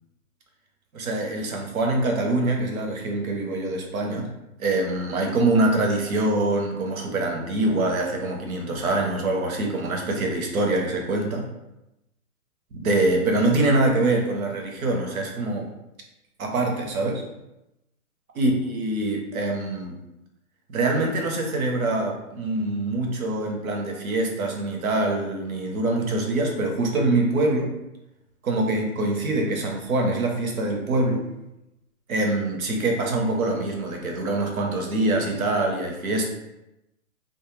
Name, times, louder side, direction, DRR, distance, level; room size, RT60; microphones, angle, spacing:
voice 1, 0.9-4.3 4.6-11.5 12.7-15.7 16.4-17.2 18.4-20.0 20.7-27.7 28.4-31.3 32.1-36.3, right 2 dB, 65° right, 1 dB, 0.8 m, -24 dB
2.2 x 2.1 x 3.0 m, 0.92 s
hypercardioid pair, 155°, 45 cm